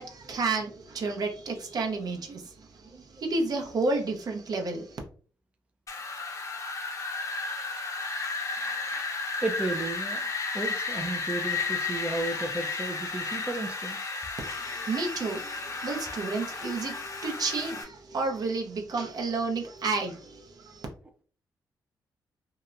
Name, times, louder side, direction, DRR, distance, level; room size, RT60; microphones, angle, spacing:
voice 1, 0.0-5.0 14.4-20.9, right 3 dB, 55° right, 0.6 m, -31 dB
Wind, 5.9-17.8, left 4 dB, 45° left, 0.7 m, -33 dB
voice 2, 8.6-9.0 9.4-14.1, right 2 dB, 15° right, 0.4 m, -34 dB
2.8 x 2.0 x 2.4 m
cardioid pair, 80°, 8 cm